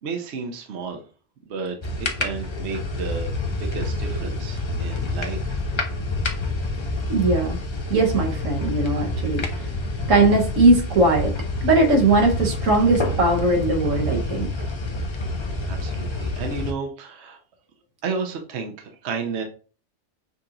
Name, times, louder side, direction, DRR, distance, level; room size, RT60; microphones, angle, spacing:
voice 1, 0.0-1.0 1.5-5.6 15.6-17.4 18.0-19.4, right 4 dB, 65° right, 3 dB, 0.9 m, -32 dB
sound 1, 1.8-16.7, left 2 dB, 40° left, 0.4 m, -28 dB
voice 2, 7.1-7.6 7.9-9.4 10.1-11.3 11.6-14.5, right 2 dB, 85° right, 3 dB, 1.5 m, -19 dB
6.7 x 2.8 x 2.5 m, 0.37 s
omnidirectional pair, 1.3 m